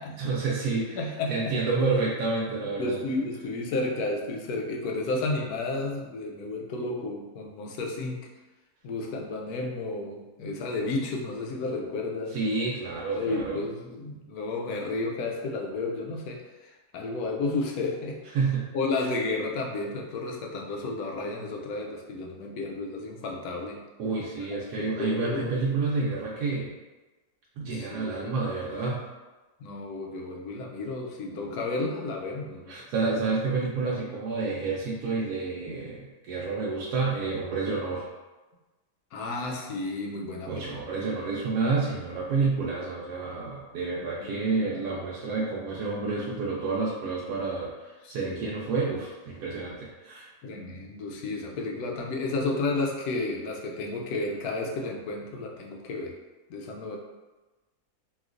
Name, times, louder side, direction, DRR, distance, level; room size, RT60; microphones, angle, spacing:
voice 1, 0.2-1.0 1.3-3.0 12.3-13.6 18.3-18.7 24.0-26.7 27.6-29.0 32.7-38.1 40.5-50.3, right 4 dB, 85° right, -5 dB, 1.1 m, -29 dB
voice 2, 0.9-1.6 2.8-8.2 8.8-12.4 13.1-18.2 18.7-23.8 24.5-25.5 27.7-28.3 29.6-32.8 39.1-41.0 44.6-45.0 48.0-48.5 50.4-56.1 56.5-57.0, left 2 dB, 80° left, 0 dB, 1.1 m, -32 dB
3.1 x 2.8 x 2.4 m, 1.2 s
omnidirectional pair, 1.6 m